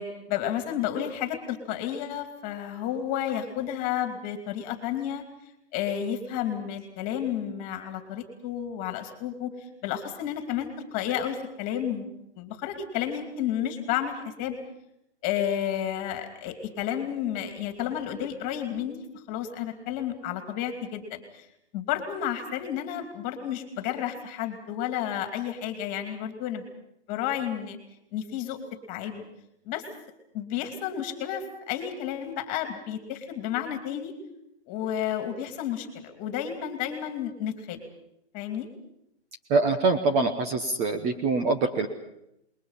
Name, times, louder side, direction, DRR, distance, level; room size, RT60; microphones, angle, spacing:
voice 1, 0.0-5.2 5.7-9.5 9.8-12.1 12.4-14.6 15.2-21.5 21.7-26.6 27.1-27.8 28.1-28.6 28.9-29.3 29.6-29.8 30.3-34.1 34.7-37.8 38.3-38.7, left 10 dB, 25° left, 7 dB, 2.7 m, -31 dB
voice 2, 39.5-41.9, right 3 dB, 20° right, 7 dB, 1.1 m, -24 dB
27.5 x 21.5 x 5.7 m, 0.80 s
hypercardioid pair, 150°, 34 cm